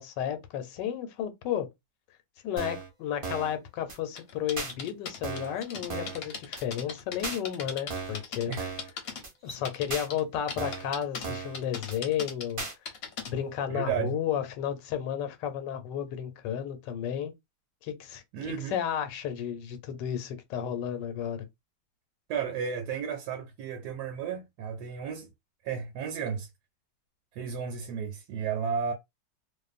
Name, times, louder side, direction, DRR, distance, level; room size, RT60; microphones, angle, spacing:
voice 1, 0.0-1.7 2.4-8.5 9.4-12.6 13.3-17.3 17.8-21.5, left 9 dB, 85° left, 1.3 m, -33 dB
sound 1, 2.6-2.9 3.2-3.6 3.9-4.0 4.6-4.7 5.2-5.6 5.9-6.2 6.6-6.7 7.2-7.4 7.9-8.2 8.6-8.9 9.2-9.3 9.9-10.1 10.6-10.9 11.2-11.6 11.9-12.0 12.6-12.7, right 4 dB, 35° right, 0.5 m, -36 dB
sound 2, 4.2-9.2 9.5-10.2 10.5-11.3 11.5-13.3, left 6 dB, 60° left, 1.0 m, -38 dB
sound 3, 5.5-5.7 7.3-7.4 7.9-8.2 9.3-9.7, left 1 dB, 25° left, 0.6 m, -50 dB
voice 2, 13.7-14.2 18.3-18.8 22.3-25.3 25.6-26.5 27.3-28.9, right 7 dB, 75° right, 1.1 m, -33 dB
2.5 x 2.5 x 2.4 m
omnidirectional pair, 1.9 m